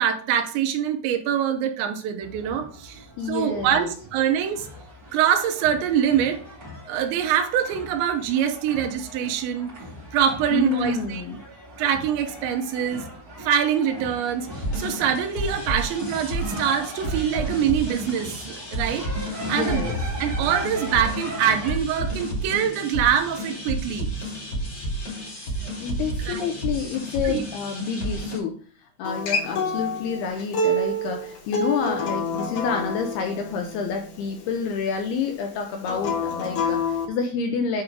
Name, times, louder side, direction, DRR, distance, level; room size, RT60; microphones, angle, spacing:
voice 1, 0.0-4.7 5.1-6.4 6.9-9.7 10.1-11.2 11.8-13.0 13.4-14.5 14.7-19.8 20.2-24.1 26.2-26.5 27.2-27.4, right 9 dB, 80° right, 6 dB, 3.1 m, -24 dB
sound 1, 2.2-21.8, equal, 30° right, 1.8 m, -39 dB
voice 2, 3.2-3.9 10.5-11.4 19.4-20.0 25.8-37.8, left 5 dB, 80° left, 4 dB, 2.3 m, -28 dB
sound 2, 14.5-28.4, right 1 dB, 30° left, 2.5 m, -31 dB
Acoustic guitar, 29.0-34.2 35.8-37.1, left 2 dB, 60° left, 2.3 m, -27 dB
8.8 x 3.7 x 4.7 m, 0.44 s
omnidirectional pair, 5.3 m